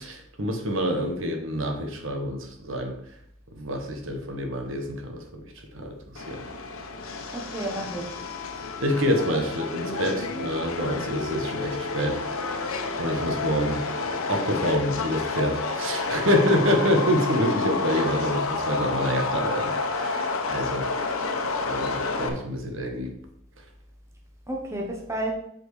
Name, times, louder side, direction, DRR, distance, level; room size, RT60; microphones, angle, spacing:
voice 1, 0.0-2.9 3.5-6.4 8.8-12.2 13.0-13.9 14.3-20.9 21.7-23.1, equal, 70° right, 3 dB, 1.3 m, -27 dB
Subway metro underground, 6.2-22.3, left 3 dB, 85° left, 1.0 m, -30 dB
voice 2, 7.3-8.2 16.3-16.5 24.5-25.3, right 1 dB, 15° right, 0 dB, 1.1 m, -31 dB
8.2 x 4.5 x 4.9 m, 0.70 s
head